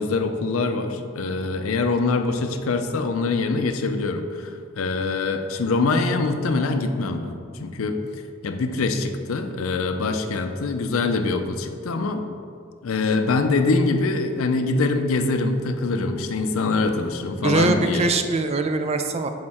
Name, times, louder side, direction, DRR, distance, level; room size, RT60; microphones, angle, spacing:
voice 1, 0.0-7.3 7.6-8.0 8.4-12.2 12.8-18.1, left 3 dB, 80° left, 8 dB, 0.5 m, -24 dB
voice 2, 17.4-19.3, right 3 dB, 30° right, 7 dB, 0.4 m, -22 dB
6.5 x 4.3 x 4.3 m, 2.3 s
head